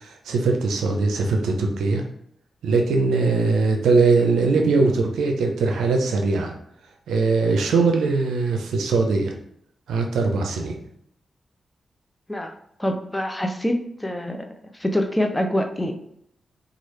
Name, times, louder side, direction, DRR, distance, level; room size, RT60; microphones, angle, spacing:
voice 1, 0.0-2.0 2.6-6.5 7.1-9.3 9.9-10.7, right 3 dB, 85° right, 3 dB, 0.5 m, -21 dB
voice 2, 12.8-14.5 14.7-16.1, left 1 dB, 15° left, 4 dB, 0.5 m, -25 dB
3.1 x 2.3 x 3.1 m, 0.71 s
supercardioid pair, 45°, 0 cm